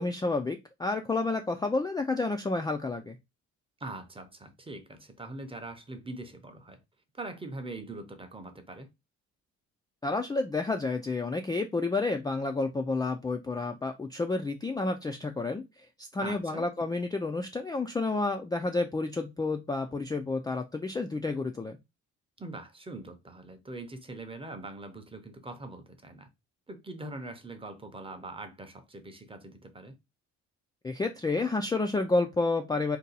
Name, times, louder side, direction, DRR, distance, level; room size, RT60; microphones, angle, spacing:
voice 1, 0.0-3.1 10.0-15.6 16.1-21.8 30.8-33.0, left 3 dB, 15° left, 0.3 m, -30 dB
voice 2, 3.8-6.8 7.2-8.9 16.2-16.6 22.4-26.3 26.7-30.0, right 2 dB, 20° right, 0.7 m, -42 dB
2.7 x 2.2 x 3.9 m
cardioid pair, 90°, 30 cm